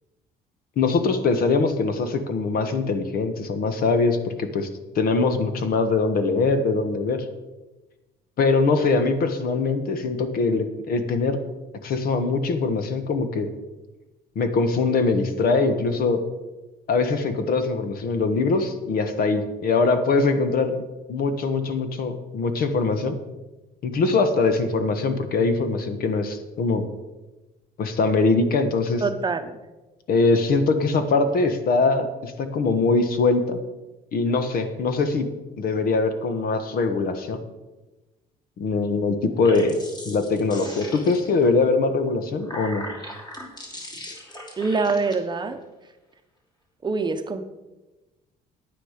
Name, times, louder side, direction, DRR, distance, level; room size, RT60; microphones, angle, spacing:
voice 1, 0.8-4.7 4.9-7.2 8.4-11.4 11.8-13.5 14.3-16.2 16.9-20.8 21.1-23.2 23.8-26.9 27.8-29.0 30.1-33.6 34.1-35.3 35.6-37.4 38.6-39.8 40.0-42.9, left 3 dB, 60° left, 9 dB, 1.3 m, -22 dB
voice 2, 29.0-29.5 44.6-45.6 46.8-47.4, right 4 dB, 25° right, 8 dB, 0.9 m, -24 dB
sound 1, 39.3-41.5 42.1-45.1, left 1 dB, 25° left, 2.8 m, -39 dB
10.0 x 9.2 x 5.1 m, 1.1 s
cardioid pair, 110°, 17 cm